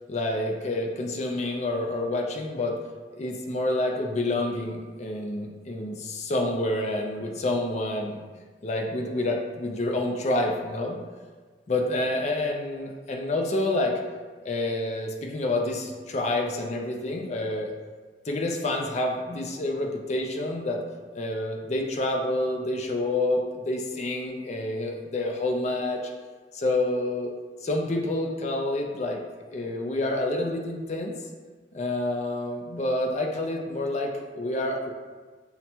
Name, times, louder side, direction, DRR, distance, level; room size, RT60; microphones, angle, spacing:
voice 1, 0.1-2.8 3.2-8.3 8.6-11.0 11.7-14.0 14.4-17.7 18.2-20.8 21.1-26.0 26.5-27.3 27.6-29.2 29.5-31.1 31.7-34.9, left 2 dB, 35° left, 1 dB, 0.4 m, -28 dB
5.7 x 2.1 x 2.8 m, 1.5 s
head